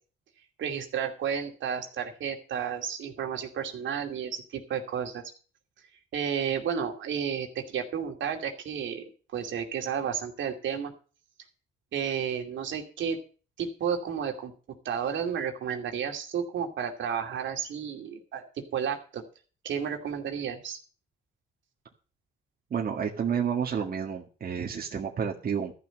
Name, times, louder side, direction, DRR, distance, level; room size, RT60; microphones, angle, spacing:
voice 1, 0.6-5.2 6.1-10.9 11.9-13.2 13.6-14.5 14.8-18.4 18.7-19.2 19.6-20.8, right 7 dB, 70° right, 3 dB, 2.6 m, -32 dB
voice 2, 22.7-25.7, right 7 dB, 50° right, 0 dB, 1.8 m, -30 dB
13.5 x 6.2 x 7.6 m, 0.38 s
cardioid pair, 90°, 20 cm